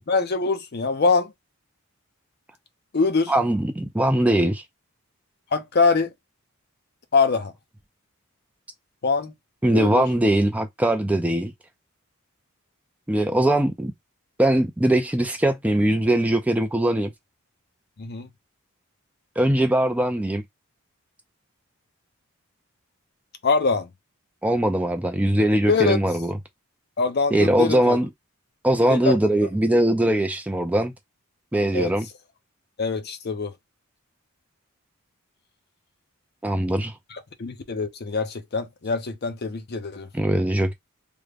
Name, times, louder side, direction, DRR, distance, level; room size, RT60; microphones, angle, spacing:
voice 1, 0.1-1.3 2.9-3.3 5.5-6.1 7.1-7.5 9.0-9.3 9.7-10.0 18.0-18.3 23.4-23.9 25.7-26.0 27.0-28.0 28.9-29.2 31.7-31.9 32.8-33.5 37.1-40.1, left 4 dB, 45° left, 0.5 m, -23 dB
voice 2, 3.3-4.6 9.6-11.5 13.1-13.9 14.4-17.1 19.4-20.4 24.4-26.3 27.3-28.1 28.6-30.9 31.5-32.1 36.4-37.0 40.1-40.7, right 1 dB, 5° right, 0.3 m, -21 dB
3.5 x 2.1 x 3.3 m
head